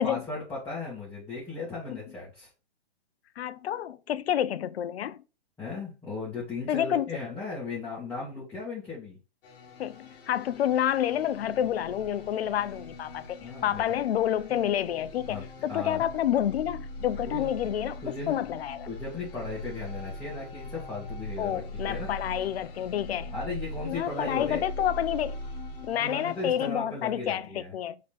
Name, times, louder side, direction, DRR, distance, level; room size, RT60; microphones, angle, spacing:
voice 1, 0.0-2.5 5.6-9.2 13.4-14.0 14.5-14.6 15.3-15.4 15.7-16.0 17.2-17.5 18.0-18.4 18.9-22.1 23.3-24.6 26.0-27.7, left 3 dB, 10° left, 1.8 m, -36 dB
voice 2, 3.4-5.2 6.7-7.1 9.8-18.9 21.4-23.3 23.8-25.4 25.8-28.0, left 10 dB, 80° left, 0.5 m, -29 dB
sound 1, 9.4-26.7, left 6 dB, 60° left, 1.5 m, -49 dB
sound 2, 10.5-25.9, equal, 35° left, 0.8 m, -41 dB
4.0 x 3.7 x 3.3 m
hypercardioid pair, 145°, 30 cm